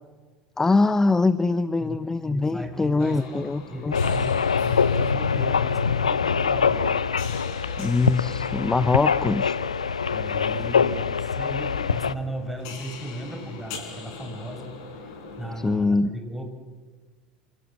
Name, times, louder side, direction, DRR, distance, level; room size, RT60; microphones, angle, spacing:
voice 1, 0.6-3.9 7.8-9.6 15.6-16.1, left 3 dB, 15° left, 14 dB, 1.0 m, -23 dB
voice 2, 1.8-6.9 10.1-16.5, equal, 5° right, 4 dB, 6.1 m, -36 dB
sound 1, 3.0-15.8, left 4 dB, 60° left, 5.5 m, -42 dB
sound 2, 3.9-12.1, left 6 dB, 85° left, 0.7 m, -24 dB
27.0 x 27.0 x 7.7 m, 1.4 s
figure-of-eight pair, 75°, 3 cm